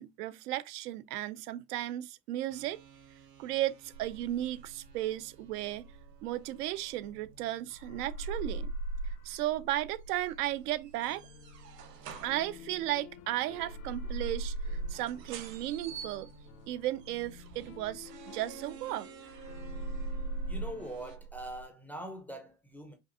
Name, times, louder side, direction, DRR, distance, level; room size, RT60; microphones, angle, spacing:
voice 1, 0.0-2.8 3.4-5.9 6.2-8.7 9.0-11.3 12.2-16.3 16.7-19.1, right 14 dB, 70° right, 0.5 m, -35 dB
sound 1, 2.5-21.2, right 8 dB, 90° right, 0.9 m, -53 dB
sound 2, 3.9-7.4 7.7-13.2 13.5-19.0 19.3-21.6, right 2 dB, 90° left, 1.3 m, -41 dB
sound 3, 10.9-20.4, left 10 dB, 65° left, 0.7 m, -54 dB
voice 2, 20.5-22.9, equal, 5° left, 0.4 m, -42 dB
5.1 x 2.6 x 2.4 m
hypercardioid pair, 110°, 47 cm